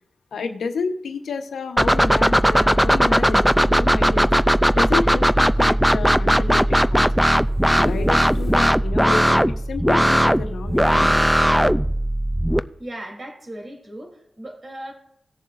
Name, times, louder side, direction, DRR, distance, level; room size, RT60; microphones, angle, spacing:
voice 1, 0.3-4.3 4.7-7.2 7.7-11.2, left 4 dB, 90° left, 6 dB, 1.1 m, -30 dB
sound 1, 1.8-12.6, equal, 5° right, 0.4 m, -18 dB
sound 2, 7.4-8.8 9.2-9.3 9.5-9.6 10.7-11.7 12.4-12.5, left 3 dB, 45° left, 1.3 m, -35 dB
voice 2, 12.8-14.9, right 1 dB, 45° right, 0 dB, 3.3 m, -37 dB
18.5 x 7.1 x 2.6 m, 0.73 s
cardioid pair, 65°, 0 cm